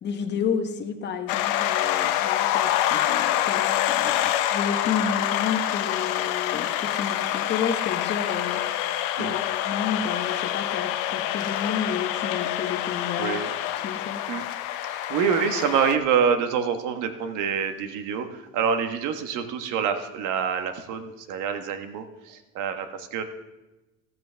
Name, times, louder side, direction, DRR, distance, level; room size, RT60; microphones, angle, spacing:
voice 1, 0.0-8.8 9.2-13.4 13.8-14.2, left 6 dB, 35° left, 6 dB, 1.2 m, -31 dB
sound 1, 1.3-16.0, left 12 dB, 80° left, 0.9 m, -26 dB
voice 2, 13.2-13.5 14.3-14.4 14.8-23.2, right 7 dB, 65° right, 7 dB, 1.4 m, -26 dB
14.0 x 13.5 x 3.5 m, 1.1 s
cardioid pair, 145°, 32 cm